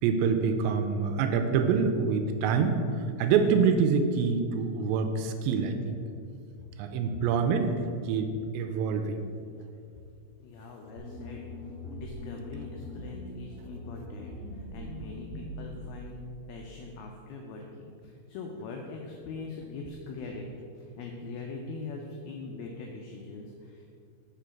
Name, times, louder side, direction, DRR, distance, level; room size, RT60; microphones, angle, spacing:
voice 1, 0.0-6.0 6.8-7.7 8.0-9.2, right 5 dB, 85° right, 6 dB, 2.7 m, -26 dB
voice 2, 10.4-11.5 11.9-16.2 16.5-23.9, left 3 dB, 85° left, 1 dB, 2.2 m, -42 dB
sound 1, 11.0-16.3, left 1 dB, 65° left, 2.0 m, -42 dB
6.8 x 5.0 x 5.8 m, 2.4 s
omnidirectional pair, 5.2 m